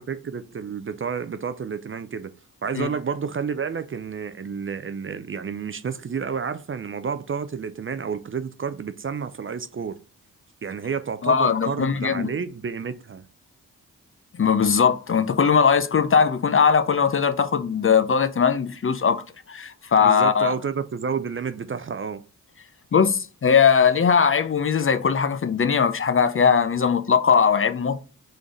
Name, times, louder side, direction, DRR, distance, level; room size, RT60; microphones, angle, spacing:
voice 1, 0.0-2.3 2.6-10.0 10.6-13.2 20.0-22.2, right 6 dB, 35° right, 0.5 m, -30 dB
voice 2, 11.2-12.3 14.4-20.5 22.9-28.0, left 6 dB, 35° left, 0.5 m, -20 dB
3.8 x 3.4 x 3.9 m
cardioid pair, 45°, 36 cm